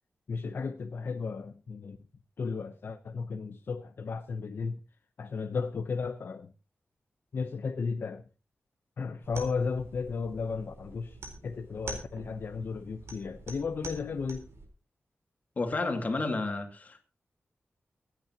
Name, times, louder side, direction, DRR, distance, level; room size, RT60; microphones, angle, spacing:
voice 1, 0.3-2.0 2.4-4.8 5.2-6.5 7.3-8.2 9.0-14.5, left 5 dB, 60° left, 0.8 m, -34 dB
sound 1, 9.2-14.6, right 2 dB, 75° right, 4.1 m, -45 dB
voice 2, 15.6-17.0, left 3 dB, 35° left, 2.3 m, -31 dB
25.5 x 8.7 x 2.9 m
wide cardioid pair, 180°, 4 cm